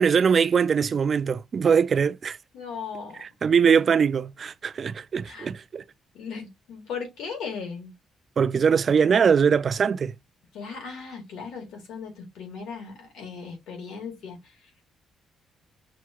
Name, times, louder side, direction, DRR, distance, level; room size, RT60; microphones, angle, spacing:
voice 1, 0.0-2.4 3.2-5.8 8.4-10.1, right 6 dB, 45° right, 0.3 m, -22 dB
voice 2, 2.5-3.2 5.3-5.5 6.1-7.9 10.5-14.5, left 5 dB, 80° left, 2.0 m, -37 dB
5.8 x 2.9 x 2.4 m
cardioid pair, 90°, 0 cm